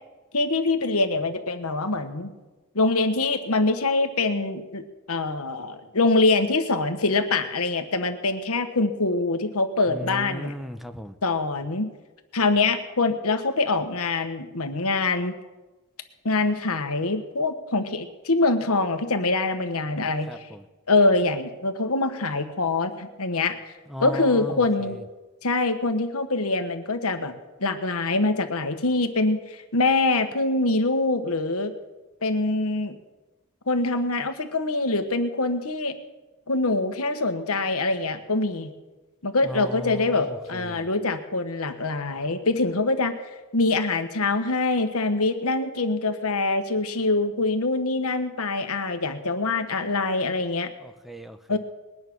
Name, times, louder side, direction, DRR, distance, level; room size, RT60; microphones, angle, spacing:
voice 1, 0.3-2.3 2.7-4.8 5.1-10.5 11.2-11.9 12.3-15.4 16.2-20.5 20.9-23.6 24.0-25.0 25.4-27.3 27.6-31.7 32.2-33.0 33.7-35.9 36.5-38.7 39.2-43.2 43.5-50.7 51.5-51.6, left 3 dB, 70° left, 7 dB, 1.4 m, -24 dB
voice 2, 9.9-11.2 20.3-20.6 23.9-25.0 39.4-40.9 50.8-51.6, equal, ahead, 9 dB, 0.8 m, -37 dB
20.5 x 9.4 x 6.2 m, 1.1 s
head